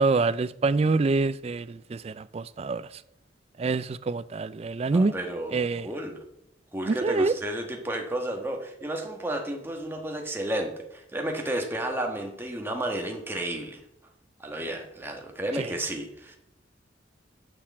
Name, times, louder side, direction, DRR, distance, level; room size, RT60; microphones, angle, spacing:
voice 1, 0.0-3.0 3.6-5.1 5.5-5.9 6.9-7.3 15.5-15.7, right 3 dB, 35° right, 0.3 m, -26 dB
voice 2, 4.9-6.2 6.7-13.8 14.4-16.4, right 1 dB, 10° right, 1.4 m, -32 dB
9.7 x 6.5 x 7.3 m
head